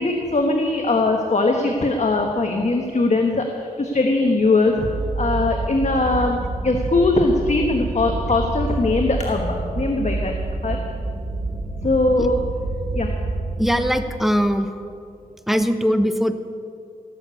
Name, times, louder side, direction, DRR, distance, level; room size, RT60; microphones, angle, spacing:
voice 1, 0.0-3.5 3.8-4.9 5.2-6.4 6.6-10.3 10.6-10.8 11.8-12.4 12.9-13.1, left 2 dB, 50° left, 2 dB, 1.2 m, -20 dB
sound 1, 4.8-13.8, right 2 dB, 90° right, 3.4 m, -27 dB
voice 2, 13.6-14.7 15.5-16.3, equal, ahead, 8 dB, 1.0 m, -20 dB
17.5 x 6.8 x 8.2 m, 2.4 s
cardioid pair, 60°, 15 cm